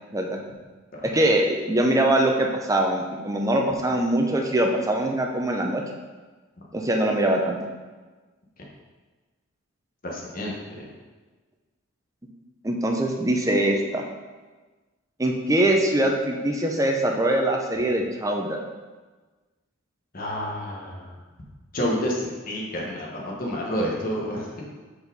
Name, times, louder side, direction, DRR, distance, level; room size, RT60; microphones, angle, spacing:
voice 1, 1.0-5.8 6.7-7.6 12.6-14.0 15.2-18.6, right 1 dB, 15° right, 1 dB, 0.6 m, -23 dB
voice 2, 10.0-10.8 20.1-21.1 21.7-24.6, equal, 40° left, -2 dB, 1.2 m, -29 dB
5.0 x 4.2 x 5.2 m, 1.3 s
head